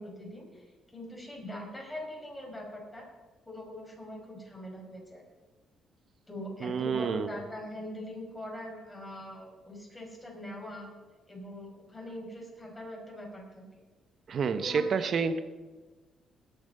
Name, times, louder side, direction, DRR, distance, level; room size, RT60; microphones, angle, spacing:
voice 1, 0.0-3.1 3.4-5.2 6.3-10.9 11.3-13.6 14.5-15.2, left 1 dB, 15° left, -1 dB, 5.2 m, -42 dB
voice 2, 6.6-7.3 14.3-15.4, right 5 dB, 55° right, 10 dB, 0.9 m, -29 dB
19.5 x 7.2 x 5.4 m, 1.3 s
cardioid pair, 90°, 0 cm